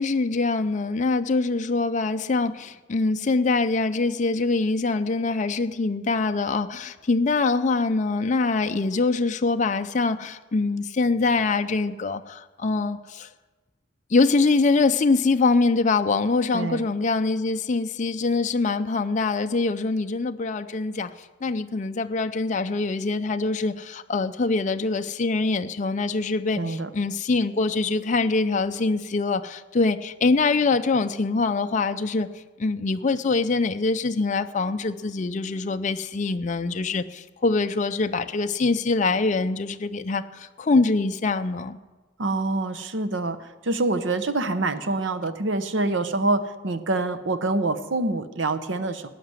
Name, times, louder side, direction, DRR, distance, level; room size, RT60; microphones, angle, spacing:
voice 1, 0.0-13.3 14.1-32.3 32.6-41.8, left 3 dB, 40° left, 0.5 m, -24 dB
voice 2, 26.6-26.9 42.2-49.1, right 2 dB, 70° right, 0.9 m, -26 dB
17.5 x 5.9 x 9.4 m
head